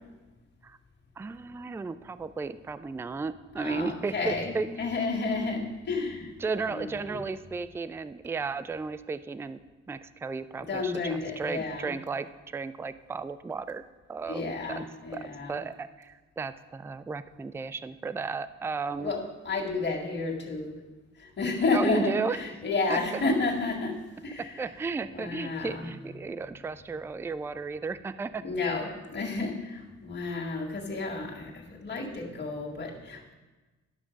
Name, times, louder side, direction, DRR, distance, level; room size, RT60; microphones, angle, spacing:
voice 1, 1.2-4.8 6.4-9.6 9.9-13.8 14.1-14.8 15.1-19.1 21.7-22.4 22.9-23.2 24.4-28.4, right 4 dB, 10° right, 12 dB, 0.3 m, -34 dB
voice 2, 3.6-6.3 6.7-7.2 10.7-11.9 14.3-15.6 19.0-20.8 21.2-24.0 24.2-24.5 25.1-25.9 28.4-33.3, left 3 dB, 35° left, -3 dB, 1.9 m, -31 dB
11.5 x 6.1 x 5.2 m, 1.2 s
cardioid pair, 90°, 30 cm